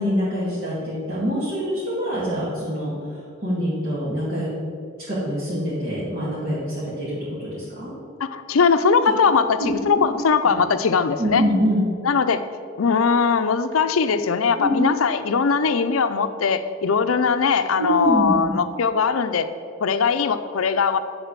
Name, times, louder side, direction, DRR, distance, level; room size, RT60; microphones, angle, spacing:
voice 1, 0.0-4.5 5.1-7.9 9.6-10.0 11.2-11.8 14.6-14.8 17.8-18.5, equal, 50° right, -10 dB, 2.3 m, -25 dB
voice 2, 8.2-11.5 12.0-12.4 12.8-19.5 19.8-21.0, left 5 dB, 90° left, 11 dB, 0.5 m, -20 dB
10.5 x 4.0 x 7.4 m, 2.4 s
head